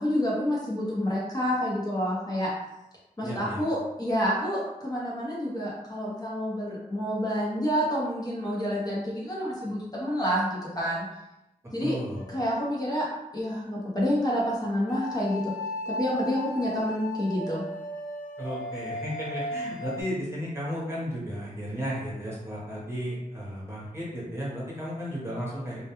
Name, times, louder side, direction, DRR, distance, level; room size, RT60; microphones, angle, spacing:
voice 1, 0.0-2.5 3.2-11.1 11.7-12.0 12.3-13.1 13.3-15.5 15.9-17.6, equal, 25° left, -6 dB, 0.7 m, -28 dB
voice 2, 3.2-3.6 11.8-12.2 18.4-25.8, equal, 15° right, -6 dB, 0.8 m, -34 dB
sound 1, 12.1-12.8 14.9-20.0, left 1 dB, 60° left, 0.4 m, -36 dB
2.2 x 2.2 x 2.9 m, 0.91 s
wide cardioid pair, 85°, 15 cm